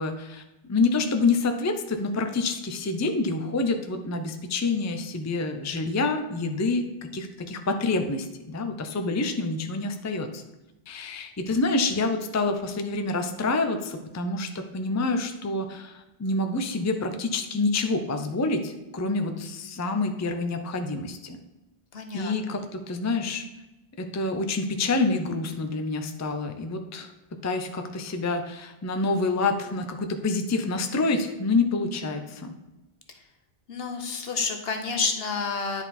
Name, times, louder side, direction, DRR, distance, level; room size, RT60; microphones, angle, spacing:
voice 1, 0.0-10.4 10.9-21.4 22.1-23.5 24.0-27.1 27.4-32.5, left 3 dB, 20° left, 6 dB, 0.5 m, -27 dB
voice 2, 21.9-22.6 33.7-35.8, left 4 dB, 70° left, 5 dB, 1.2 m, -29 dB
10.0 x 4.4 x 4.2 m, 1.0 s
omnidirectional pair, 1.0 m